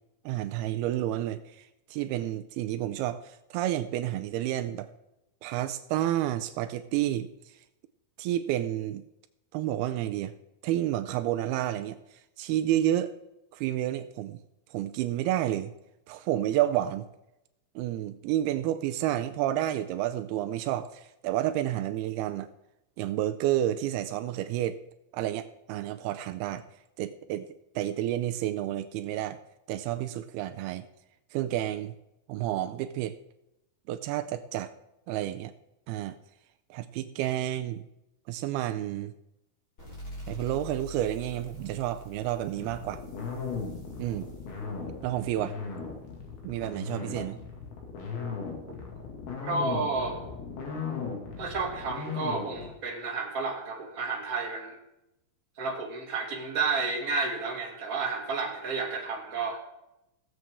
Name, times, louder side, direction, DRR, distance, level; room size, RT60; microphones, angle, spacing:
voice 1, 0.3-4.9 5.4-7.3 8.2-9.0 9.5-10.3 10.6-12.0 12.4-13.1 13.5-14.4 14.7-15.7 16.1-17.1 17.8-22.5 23.0-24.8 25.1-26.6 27.0-27.5 27.8-29.4 29.7-30.9 31.3-31.9 32.3-33.2 33.9-34.7 35.1-35.5 35.9-36.2 36.7-37.8 38.3-39.1 40.3-43.0 44.0-44.3 45.0-45.5 46.4-47.4, right 13 dB, 85° right, 11 dB, 2.6 m, -30 dB
sound 1, 39.8-47.0, equal, 20° left, 3.8 m, -46 dB
sound 2, 42.6-52.7, left 5 dB, 70° left, 4.0 m, -37 dB
voice 2, 49.4-50.2 51.4-54.7 55.6-59.6, right 4 dB, 25° right, -1 dB, 2.2 m, -31 dB
18.5 x 7.7 x 3.6 m, 0.87 s
omnidirectional pair, 4.5 m